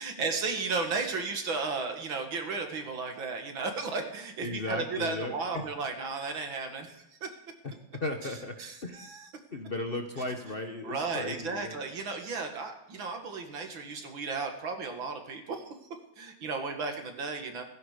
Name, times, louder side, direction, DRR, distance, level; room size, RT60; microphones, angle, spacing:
voice 1, 0.0-7.4 8.2-9.3 10.8-15.7 16.2-17.6, right 4 dB, 75° right, 5 dB, 2.6 m, -34 dB
voice 2, 4.4-5.6 7.9-8.5 8.8-9.0 9.5-11.8, left 2 dB, 35° left, 5 dB, 1.1 m, -35 dB
16.0 x 16.0 x 5.1 m, 0.84 s
omnidirectional pair, 2.2 m